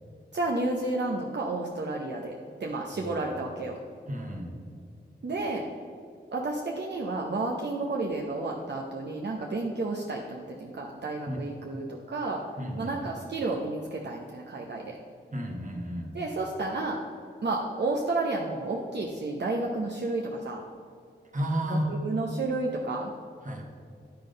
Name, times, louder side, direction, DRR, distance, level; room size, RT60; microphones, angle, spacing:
voice 1, 0.3-2.3 2.6-3.7 5.2-5.6 6.3-12.4 12.8-15.0 16.1-17.0 17.4-20.6 21.7-23.1, right 2 dB, 65° right, -1 dB, 0.8 m, -31 dB
voice 2, 2.9-3.2 4.1-4.5 11.3-11.4 12.6-13.0 15.3-16.1 21.3-22.0 23.4-23.6, equal, 45° right, 1 dB, 1.4 m, -32 dB
10.0 x 3.9 x 5.2 m, 2.3 s
cardioid pair, 50°, 19 cm